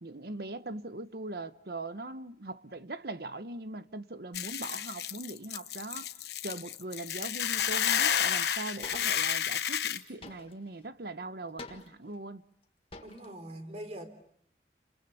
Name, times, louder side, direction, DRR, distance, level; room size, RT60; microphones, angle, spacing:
voice 1, 0.0-6.1 6.4-12.4, right 2 dB, 60° right, 1.1 m, -41 dB
Hiss / Boiling, 4.3-10.0, left 9 dB, 65° left, 1.1 m, -31 dB
sound 1, 7.4-7.9 8.2-8.3 8.8-9.3 10.2-10.9 11.6-12.2 12.6-12.7 12.9-13.3, left 2 dB, 30° left, 1.7 m, -47 dB
voice 2, 13.0-14.1, right 1 dB, 40° right, 3.6 m, -42 dB
30.0 x 27.5 x 7.0 m
head